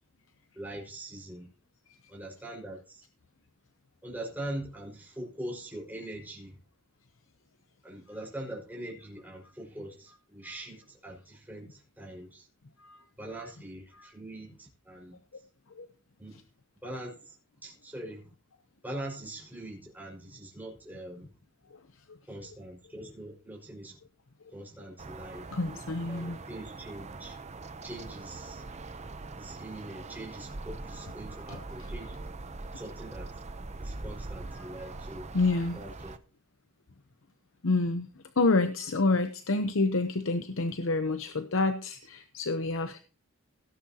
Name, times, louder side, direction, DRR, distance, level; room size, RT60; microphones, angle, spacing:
voice 1, 0.6-1.5 2.1-3.0 4.0-6.6 7.8-12.5 13.2-15.2 16.2-16.4 16.8-17.4 17.6-18.3 18.8-21.3 22.3-24.0 24.5-25.5 26.1-27.4 27.8-28.7 29.4-32.2 32.7-33.3 33.8-35.3 35.7-36.1, right 1 dB, 10° right, 5.2 m, -42 dB
sound 1, 25.0-36.2, right 3 dB, 35° right, 0.7 m, -42 dB
voice 2, 25.5-26.4 31.5-31.6 34.5-34.9 35.3-35.8 37.6-43.0, left 3 dB, 70° left, 0.8 m, -29 dB
17.0 x 10.0 x 2.9 m
head